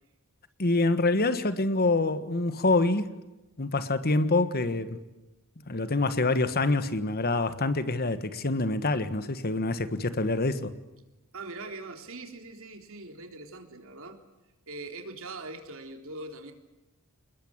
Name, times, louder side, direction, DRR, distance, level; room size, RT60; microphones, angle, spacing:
voice 1, 0.6-3.1 3.6-5.0 5.7-10.7, left 2 dB, 45° left, 1.5 m, -26 dB
voice 2, 11.3-14.2 14.7-16.5, right 2 dB, 70° right, 3.6 m, -41 dB
28.0 x 21.0 x 8.9 m
head